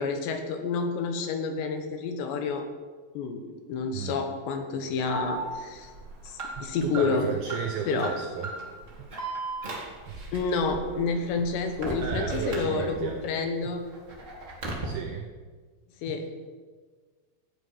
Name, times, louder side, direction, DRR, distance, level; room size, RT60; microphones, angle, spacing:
voice 1, 0.0-2.7 3.1-3.4 3.7-5.9 6.6-7.3 7.9-8.1 10.3-13.8 16.0-16.3, left 4 dB, 75° left, 6 dB, 3.1 m, -29 dB
voice 2, 3.9-4.2 6.6-8.5 9.0-9.1 10.1-10.2 12.0-13.2 13.6-13.7 14.8-15.3 16.1-16.2, right 7 dB, 80° right, 4 dB, 2.1 m, -34 dB
Alarm, 5.1-13.2 13.6-14.8, right 2 dB, 55° right, 0.8 m, -37 dB
15.5 x 9.1 x 5.7 m, 1.5 s
omnidirectional pair, 5.4 m